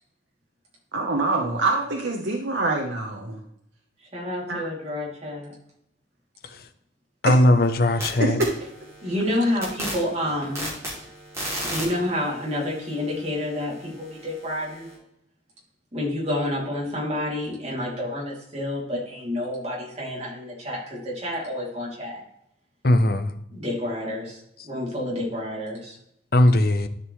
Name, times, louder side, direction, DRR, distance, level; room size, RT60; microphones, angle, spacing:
voice 1, 0.9-3.4 4.5-4.7 7.2-7.4 8.2-8.5, right 2 dB, 70° right, 1 dB, 1.0 m, -25 dB
voice 2, 4.1-5.5 9.0-10.7 11.6-14.9 15.9-22.2 23.5-26.0, left 1 dB, 35° right, -4 dB, 2.8 m, -29 dB
voice 3, 7.2-8.4 22.8-23.3 26.3-26.9, left 1 dB, 50° left, 10 dB, 0.7 m, -18 dB
sound 1, 7.6-8.1 8.4-14.9, right 1 dB, 15° right, 2.8 m, -37 dB
12.5 x 5.2 x 3.2 m, 0.78 s
head